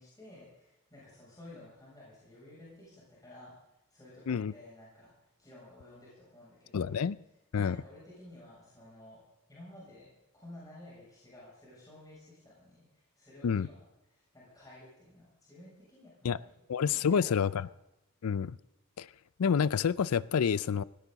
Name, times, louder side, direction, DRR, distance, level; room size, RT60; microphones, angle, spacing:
voice 1, 0.0-3.6 3.9-7.0 7.5-9.2 9.5-16.5 17.0-17.6, left 1 dB, 15° left, 7.3 m, -53 dB
voice 2, 6.7-7.2 7.5-7.8 13.4-13.7 16.2-16.4 16.7-17.7 18.2-18.6 19.0-19.1 19.4-20.8, left 6 dB, 75° left, 0.4 m, -28 dB
18.0 x 17.5 x 4.0 m
head